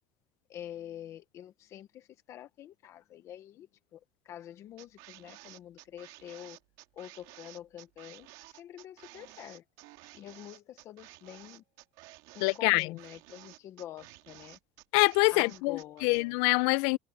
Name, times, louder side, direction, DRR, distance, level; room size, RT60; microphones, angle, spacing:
voice 1, 0.5-6.6 6.9-9.6 10.1-11.6 12.3-14.6 15.3-16.4, left 11 dB, 35° left, 1.0 m, -47 dB
sound 1, 4.8-16.2, right 20 dB, 65° right, 2.5 m, -53 dB
voice 2, 12.4-12.9 14.9-17.0, left 26 dB, 65° left, 0.5 m, -25 dB
cardioid pair, 170°, 8 cm